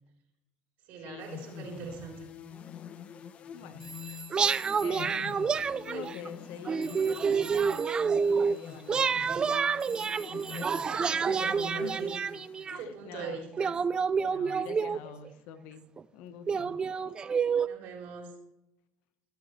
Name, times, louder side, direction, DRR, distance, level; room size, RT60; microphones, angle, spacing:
voice 1, 0.9-2.3 3.6-3.8 5.8-6.2 10.4-12.1 12.8-13.8 17.2-17.3 17.6-18.3, right 5 dB, 70° right, -1 dB, 4.0 m, -42 dB
sound 1, 1.2-13.1, left 9 dB, 45° left, 0.9 m, -46 dB
voice 2, 3.5-3.8 4.8-5.6 5.9-9.2 11.3-11.9 12.7-13.4 14.2-15.9 16.1-16.8, left 8 dB, 75° left, 9 dB, 1.3 m, -45 dB
Telephone, 3.8-6.5 6.8-12.1, right 3 dB, 15° right, 1.3 m, -49 dB
sound 2, 4.3-6.3 6.7-8.6 8.9-12.8 13.6-15.3 16.0-16.1 16.5-17.7, right 6 dB, 30° right, 0.4 m, -28 dB
20.0 x 7.1 x 3.3 m, 0.89 s
supercardioid pair, 95°, 3 cm